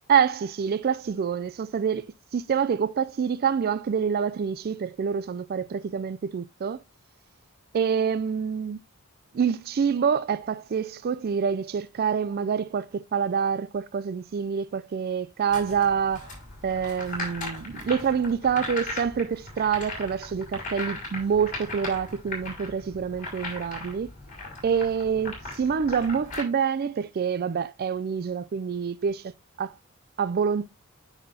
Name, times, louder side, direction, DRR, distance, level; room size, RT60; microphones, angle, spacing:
voice 1, 0.1-2.1 2.3-6.8 7.7-8.8 9.3-16.3 16.6-24.1 24.6-29.3 29.6-29.8 30.2-30.7, right 6 dB, 45° right, 0.4 m, -26 dB
sound 1, 15.5-26.4, left 2 dB, 35° left, 5.4 m, -38 dB
9.5 x 5.7 x 2.7 m
head